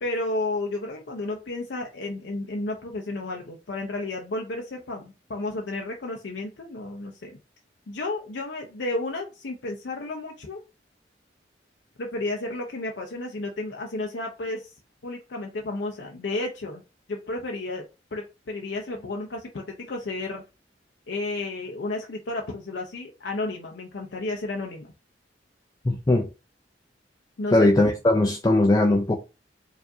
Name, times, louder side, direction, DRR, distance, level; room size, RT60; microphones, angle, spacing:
voice 1, 0.0-7.4 7.9-10.6 12.0-14.7 15.0-16.8 17.1-17.8 18.1-20.4 21.1-24.9 27.4-27.7, left 2 dB, 80° left, 0.6 m, -32 dB
voice 2, 25.8-26.3 27.5-29.2, left 2 dB, 20° left, 0.4 m, -19 dB
4.6 x 2.5 x 2.7 m
head